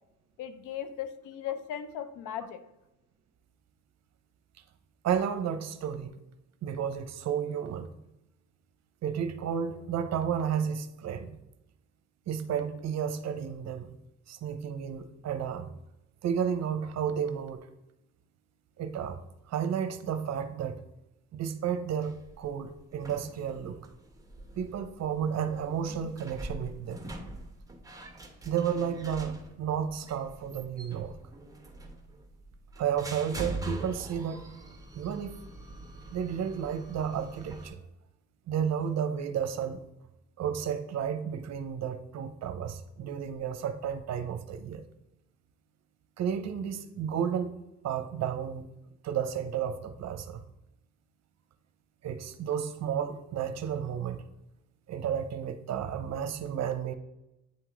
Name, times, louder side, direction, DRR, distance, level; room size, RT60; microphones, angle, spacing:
voice 1, 0.4-2.6, left 9 dB, 90° left, 11 dB, 0.6 m, -37 dB
voice 2, 5.0-6.1 6.6-7.9 9.0-11.4 12.3-13.9 14.3-15.7 16.2-17.7 18.8-19.2 19.5-20.8 21.3-23.8 24.6-27.1 28.4-31.2 32.8-34.5 34.9-35.4 36.1-37.8 38.5-39.8 40.4-44.8 46.2-47.5 47.8-48.7 49.0-50.4 52.0-54.2 54.9-56.9, right 8 dB, 60° right, 9 dB, 0.7 m, -32 dB
sound 1, 22.0-37.7, right 1 dB, 10° right, 0.9 m, -44 dB
8.6 x 3.1 x 3.7 m, 0.91 s
cardioid pair, 90°, 30 cm